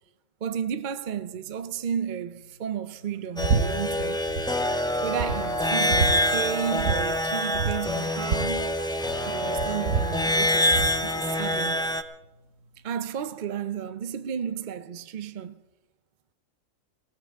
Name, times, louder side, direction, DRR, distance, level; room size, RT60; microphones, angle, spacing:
voice 1, 0.4-4.2 5.0-8.8 9.3-10.7 11.0-11.8 12.8-15.6, right 8 dB, 55° right, 0.6 m, -33 dB
sound 1, 3.4-12.0, left 1 dB, 5° left, 0.4 m, -26 dB
sound 2, 3.4-3.7 3.9-4.5 4.8-4.9 5.2-6.2 6.8-7.0 7.2-7.3 7.5-9.2 9.5-11.0, right 5 dB, 70° right, 1.3 m, -27 dB
Brass instrument, 5.3-11.5, equal, 40° left, 5.5 m, -44 dB
20.0 x 17.0 x 3.6 m
omnidirectional pair, 1.4 m